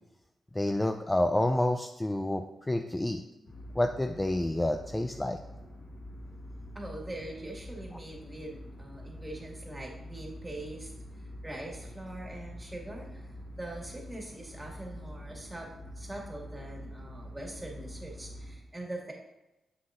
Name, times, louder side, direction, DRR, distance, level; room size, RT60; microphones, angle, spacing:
voice 1, 0.6-3.2 3.8-5.4, left 1 dB, 15° left, 5 dB, 0.4 m, -28 dB
sound 1, 3.4-18.5, equal, 70° left, 2.0 m, -46 dB
voice 2, 6.7-10.9 11.4-19.1, right 1 dB, 15° right, -2 dB, 1.9 m, -42 dB
7.5 x 6.0 x 2.5 m, 0.96 s
cardioid pair, 70°, 0 cm